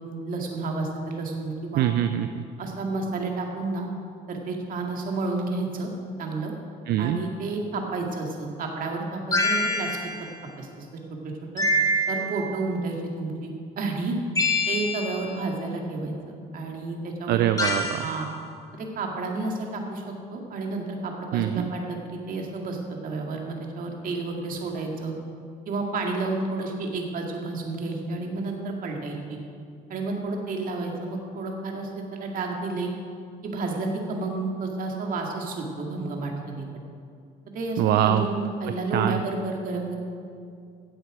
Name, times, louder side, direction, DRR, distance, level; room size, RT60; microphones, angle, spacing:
voice 1, 0.0-1.9 2.6-3.9 4.3-5.9 6.2-6.5 7.0-10.3 10.6-10.9 11.2-11.6 12.1-14.2 14.7-17.4 18.0-18.3 18.7-20.0 20.3-25.1 25.7-29.4 29.9-32.9 33.4-36.7 37.5-40.0, right 3 dB, 55° right, 1 dB, 2.2 m, -31 dB
voice 2, 1.8-2.4 6.9-7.2 17.3-18.0 21.3-21.7 37.8-38.2 38.9-39.2, right 12 dB, 75° right, 9 dB, 0.5 m, -23 dB
sound 1, 9.3-10.3 11.6-12.5 14.3-15.3 17.6-18.1, left 1 dB, 20° left, 1.8 m, -25 dB
15.5 x 7.8 x 5.0 m, 2.3 s
cardioid pair, 110°, 17 cm